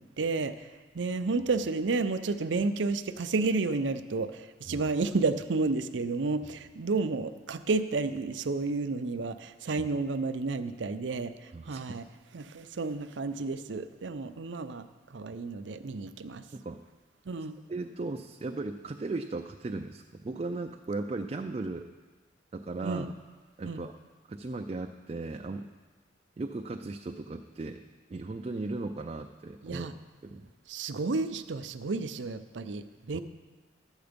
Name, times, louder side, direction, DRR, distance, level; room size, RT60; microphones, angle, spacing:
voice 1, 0.2-0.5 0.9-11.3 11.7-12.0 12.3-14.8 15.1-16.4 17.3-17.6 22.8-23.0 23.6-23.8 29.6-29.9 30.7-33.2, right 3 dB, 80° right, 10 dB, 0.6 m, -31 dB
voice 2, 11.5-11.9 16.5-16.8 17.7-21.9 22.5-23.1 23.6-23.9 24.3-25.7 26.4-27.8 28.1-29.9 30.2-30.5 33.1-33.2, right 3 dB, 35° right, 4 dB, 0.3 m, -37 dB
12.0 x 8.1 x 5.2 m, 1.3 s
head